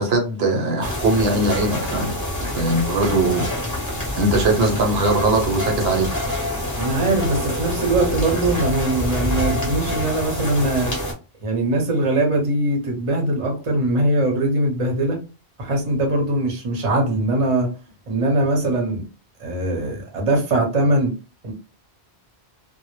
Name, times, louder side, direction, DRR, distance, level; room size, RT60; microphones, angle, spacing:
voice 1, 0.0-3.5 4.2-6.2, right 2 dB, 70° right, 0.9 m, -20 dB
sound 1, 0.8-11.1, left 1 dB, 20° left, 0.6 m, -26 dB
voice 2, 6.8-10.9 11.4-15.2 15.6-17.7 18.1-19.0 19.4-21.1 21.4-21.5, right 2 dB, 35° right, 0.7 m, -21 dB
2.0 x 2.0 x 3.0 m
omnidirectional pair, 1.1 m